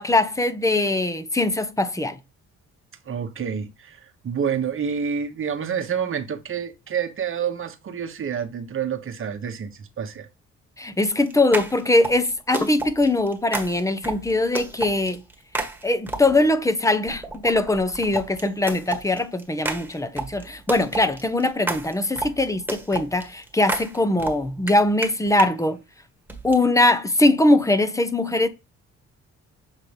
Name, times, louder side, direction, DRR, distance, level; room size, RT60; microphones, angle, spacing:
voice 1, 0.0-2.2 10.8-15.2 15.8-25.8 26.4-28.5, left 2 dB, 10° left, 0.8 m, -21 dB
voice 2, 3.1-10.3, right 7 dB, 45° right, 1.1 m, -28 dB
sound 1, 11.1-16.5 17.1-25.5 26.3-26.6, right 2 dB, 5° right, 1.6 m, -32 dB
7.4 x 3.8 x 3.4 m
cardioid pair, 90°, 30 cm